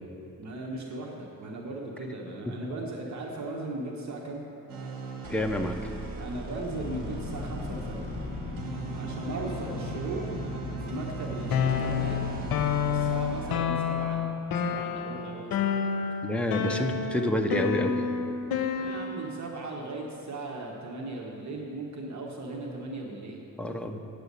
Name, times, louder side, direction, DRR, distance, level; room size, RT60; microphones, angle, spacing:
voice 1, 0.4-4.4 6.2-8.0 8.9-10.3 10.8-12.2 12.9-14.2 14.6-16.0 18.7-23.4, right 2 dB, 55° right, -1 dB, 1.1 m, -37 dB
sound 1, 4.7-13.5, right 3 dB, 75° right, 1.3 m, -38 dB
voice 2, 5.3-5.9 16.2-18.1 23.6-24.0, equal, 5° left, 4 dB, 0.6 m, -28 dB
sound 2, 6.7-12.6, left 4 dB, 60° left, 1.2 m, -38 dB
sound 3, 11.5-19.4, left 7 dB, 80° left, 0.7 m, -29 dB
8.2 x 6.8 x 8.2 m, 2.9 s
cardioid pair, 120°, 35 cm